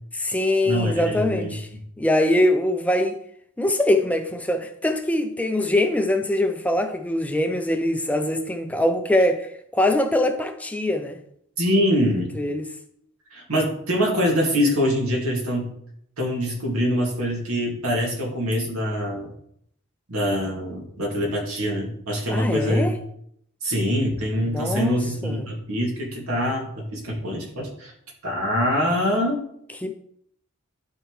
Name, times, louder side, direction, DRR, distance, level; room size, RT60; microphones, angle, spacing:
voice 1, 0.1-1.7 2.0-3.2 3.6-11.2 12.4-12.7 22.3-23.0 24.4-25.5 29.8-29.9, left 1 dB, 5° left, 0.4 m, -23 dB
voice 2, 0.6-1.5 11.6-12.3 13.3-15.7 16.2-19.3 20.1-22.9 23.6-27.9 28.2-29.4, equal, 80° right, 2.2 m, -24 dB
11.5 x 4.5 x 3.2 m
head